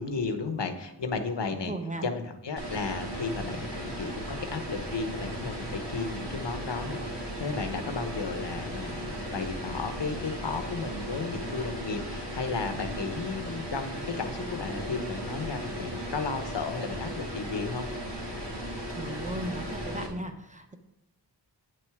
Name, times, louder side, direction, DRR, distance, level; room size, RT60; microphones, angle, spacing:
voice 1, 0.0-1.7 2.0-17.9, left 4 dB, 75° left, 7 dB, 1.0 m, -34 dB
voice 2, 1.5-2.1 18.9-20.8, right 1 dB, 15° right, 5 dB, 1.1 m, -36 dB
sound 1, 2.6-20.1, equal, 80° right, 2.3 m, -36 dB
8.4 x 7.7 x 3.6 m, 0.92 s
wide cardioid pair, 50°, 43 cm